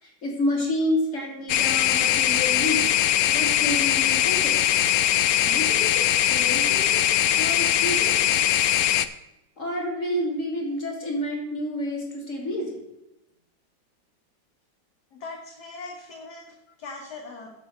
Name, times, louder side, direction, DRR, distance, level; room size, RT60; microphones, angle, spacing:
voice 1, 0.0-2.9 3.3-4.8 5.4-7.0 7.3-8.3 9.6-12.8, left 1 dB, 40° left, 0 dB, 2.6 m, -29 dB
sound 1, 1.5-9.1, left 12 dB, 85° left, 0.8 m, -21 dB
voice 2, 15.1-17.6, left 3 dB, 60° left, 1 dB, 1.6 m, -40 dB
10.0 x 4.6 x 7.8 m, 0.93 s
omnidirectional pair, 2.1 m